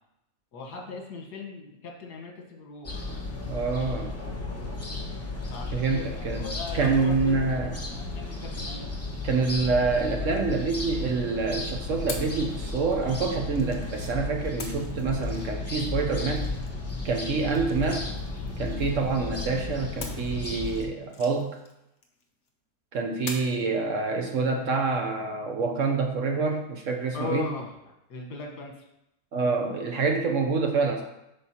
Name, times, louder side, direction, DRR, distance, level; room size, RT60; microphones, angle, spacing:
voice 1, 0.5-2.9 5.5-7.6 7.9-8.9 27.1-27.7 28.1-28.8, left 4 dB, 80° left, 1 dB, 1.8 m, -38 dB
sound 1, 2.8-20.8, left 3 dB, 15° left, 0.6 m, -34 dB
voice 2, 3.5-4.1 5.7-7.8 9.2-16.5 17.0-18.1 18.6-21.6 22.9-27.5 29.3-31.0, right 4 dB, 60° right, 3 dB, 1.0 m, -27 dB
sound 2, 9.8-11.2 12.1-14.1 14.6-19.3 20.0-22.5 23.3-23.7, left 4 dB, 50° left, 1.0 m, -45 dB
8.5 x 5.6 x 2.9 m, 0.85 s
omnidirectional pair, 1.7 m